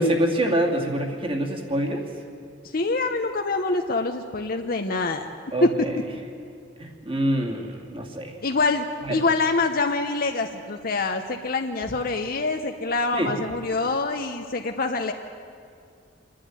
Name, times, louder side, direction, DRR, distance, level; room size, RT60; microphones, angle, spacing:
voice 1, 0.0-2.1 5.5-6.0 6.8-8.3 9.1-9.2 13.1-13.3, right 1 dB, 30° right, 1 dB, 2.5 m, -25 dB
voice 2, 2.7-5.3 5.6-5.7 8.4-15.1, left 3 dB, 55° left, 4 dB, 1.0 m, -25 dB
27.0 x 11.5 x 9.7 m, 2.2 s
head